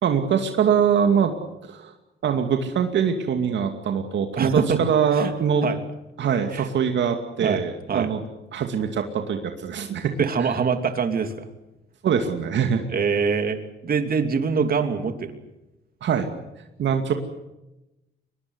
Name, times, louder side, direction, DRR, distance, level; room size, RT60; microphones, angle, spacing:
voice 1, 0.0-1.3 1.6-1.9 2.2-5.6 6.2-8.2 8.5-10.1 10.4-10.5 12.0-12.8 16.0-16.3 16.8-17.1, right 7 dB, 65° right, 5 dB, 2.5 m, -23 dB
voice 2, 4.4-4.8 5.1-5.3 5.6-5.8 6.5-6.7 7.4-7.6 7.9-8.1 10.2-11.4 12.9-15.4, right 6 dB, 50° right, 7 dB, 3.0 m, -24 dB
23.5 x 21.5 x 8.0 m, 0.97 s
cardioid pair, 90°, 20 cm